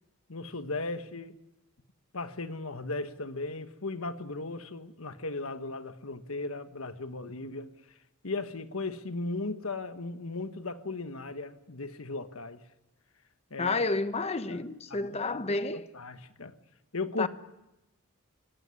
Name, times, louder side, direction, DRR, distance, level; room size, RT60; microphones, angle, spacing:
voice 1, 0.3-1.3 2.1-8.0 8.2-12.6 13.5-13.8 14.5-14.6 14.9-16.5 16.9-17.3, left 3 dB, 75° left, 1.4 m, -37 dB
voice 2, 13.6-15.9 17.2-17.3, left 3 dB, 30° left, 0.9 m, -30 dB
24.5 x 17.5 x 9.8 m
head